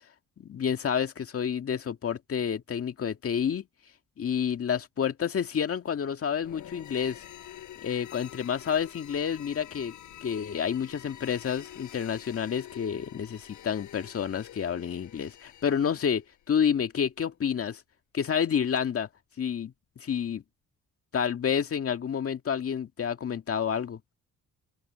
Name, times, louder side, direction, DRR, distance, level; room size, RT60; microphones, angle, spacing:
voice 1, 0.4-3.7 4.2-7.3 7.8-10.0 10.2-17.8 18.1-19.1 19.4-20.4 21.1-24.0, left 7 dB, 50° left, 2.0 m, -29 dB
sound 1, 6.3-16.3, left 12 dB, 75° left, 4.9 m, -47 dB
open air
cardioid pair, 90°, 30 cm